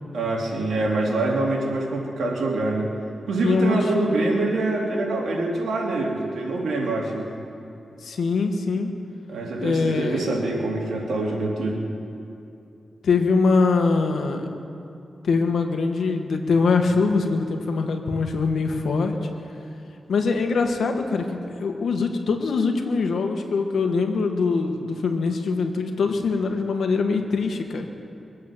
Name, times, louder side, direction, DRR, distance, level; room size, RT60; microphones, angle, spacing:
voice 1, 0.1-2.9 3.3-7.3 9.3-11.8, right 2 dB, 90° right, -2 dB, 2.9 m, -25 dB
voice 2, 3.4-4.1 8.0-8.9 9.6-10.3 13.0-14.5 15.2-19.1 20.1-27.9, left 4 dB, 80° left, 4 dB, 1.6 m, -23 dB
23.0 x 8.5 x 7.4 m, 2.7 s
cardioid pair, 75°, 0 cm